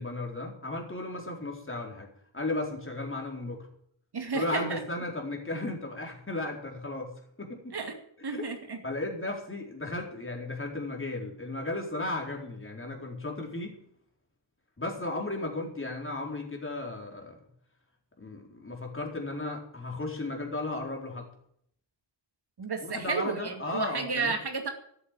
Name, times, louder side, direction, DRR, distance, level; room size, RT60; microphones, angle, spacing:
voice 1, 0.0-2.1 2.3-3.7 4.3-7.1 7.4-7.8 8.3-8.4 8.8-13.8 14.8-17.4 18.2-21.3 22.8-24.4, left 2 dB, 30° left, 1 dB, 4.2 m, -35 dB
voice 2, 4.1-4.8 7.7-8.0 8.2-8.8 22.6-24.7, right 4 dB, 60° right, 5 dB, 2.4 m, -32 dB
13.5 x 8.3 x 9.2 m, 0.67 s
wide cardioid pair, 95°, 44 cm